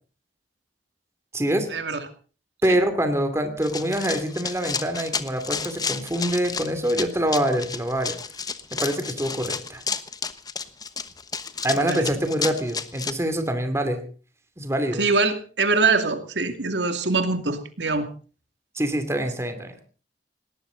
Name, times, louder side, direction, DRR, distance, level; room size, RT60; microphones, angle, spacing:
voice 1, 1.3-1.7 2.6-8.2 8.7-9.8 11.6-14.0 14.6-15.0 18.7-19.7, right 1 dB, 15° right, 8 dB, 2.7 m, -25 dB
Run, 3.6-13.1, left 5 dB, 25° left, 1.1 m, -31 dB
voice 2, 11.8-12.1 15.0-18.1, right 3 dB, 85° right, 7 dB, 2.4 m, -23 dB
19.5 x 18.5 x 3.9 m, 0.38 s
head